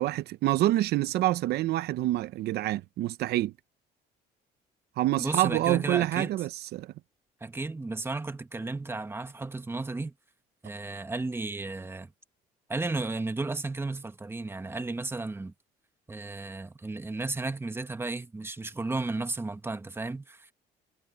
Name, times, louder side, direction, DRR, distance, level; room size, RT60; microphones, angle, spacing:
voice 1, 0.0-3.5 5.0-6.9, right 15 dB, 75° right, 0.7 m, -27 dB
voice 2, 5.2-6.3 7.4-10.1 10.6-12.1 12.7-15.5 16.1-20.5, right 3 dB, 15° right, 1.5 m, -34 dB
cardioid pair, 110°, 17 cm